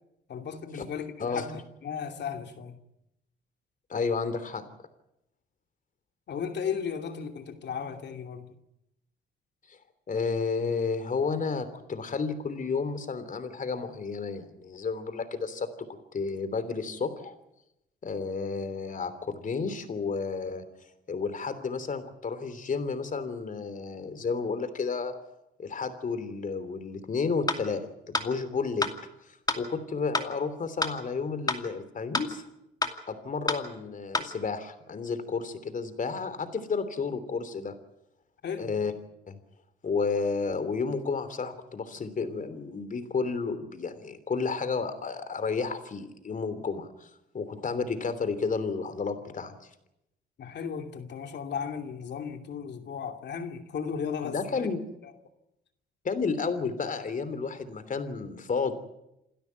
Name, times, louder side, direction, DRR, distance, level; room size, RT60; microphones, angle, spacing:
voice 1, 0.3-2.8 6.3-8.5 38.4-38.7 50.4-54.7, left 7 dB, 60° left, 5 dB, 2.7 m, -35 dB
voice 2, 3.9-4.6 9.7-9.8 10.1-15.7 16.1-17.3 18.0-20.6 21.1-25.1 25.6-28.9 29.2-32.4 33.1-37.7 38.6-38.9 39.3-39.4 39.8-49.7 54.2-54.8 56.0-58.7, left 4 dB, 40° left, 11 dB, 3.1 m, -31 dB
sound 1, 27.5-27.6 28.1-28.3 28.8-28.9 29.5-29.6 30.1-30.3 30.8-30.9 31.5-31.6 32.1-32.3 32.8-32.9 33.5-33.6 34.1-34.3, left 2 dB, 20° left, 2.5 m, -27 dB
28.0 x 12.5 x 9.4 m, 0.86 s
cardioid pair, 90°, 20 cm